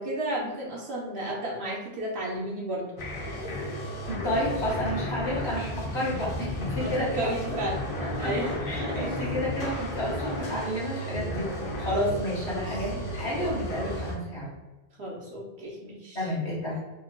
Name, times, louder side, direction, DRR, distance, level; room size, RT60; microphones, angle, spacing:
voice 1, 0.0-2.9 6.8-6.9 7.2-7.8 8.2-8.5 8.8-9.2 12.4-12.8 15.0-16.2, right 1 dB, 70° right, -3 dB, 1.2 m, -33 dB
sound 1, 3.0-14.1, left 1 dB, 55° left, 0.9 m, -33 dB
voice 2, 4.1-7.6 8.0-8.3 8.6-14.5 16.2-16.8, equal, 75° left, -6 dB, 1.8 m, -31 dB
4.5 x 2.9 x 2.2 m, 1.2 s
omnidirectional pair, 1.1 m